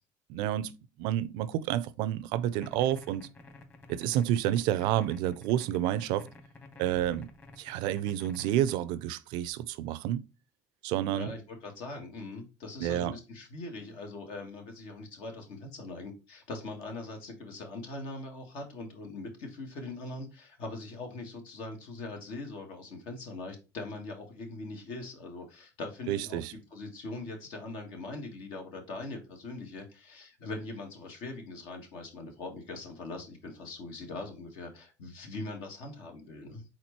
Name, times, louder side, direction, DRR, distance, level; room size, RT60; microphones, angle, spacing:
voice 1, 0.3-0.7 1.0-3.3 3.9-6.3 6.8-7.3 7.6-10.2 10.8-11.3 12.8-13.2 26.1-26.5, right 12 dB, 80° right, 0.4 m, -29 dB
sound 1, 2.4-8.8, left 3 dB, 30° left, 1.3 m, -51 dB
voice 2, 11.1-26.4 26.7-36.6, left 2 dB, 80° left, 1.5 m, -41 dB
4.3 x 3.8 x 2.9 m
supercardioid pair, 85°, 8 cm